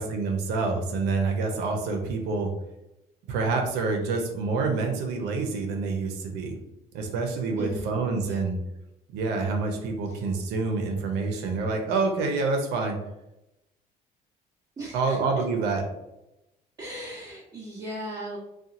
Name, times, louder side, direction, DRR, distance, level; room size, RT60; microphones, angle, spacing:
voice 1, 0.0-2.5 3.3-6.6 6.9-8.6 9.1-13.0 14.9-15.8, right 4 dB, 90° right, 3 dB, 0.6 m, -27 dB
voice 2, 7.6-8.0 8.2-8.5 10.1-10.2 14.8-15.2 16.8-18.4, right 1 dB, 25° right, -7 dB, 0.8 m, -38 dB
2.8 x 2.2 x 2.5 m, 0.90 s
cardioid pair, 110°, 17 cm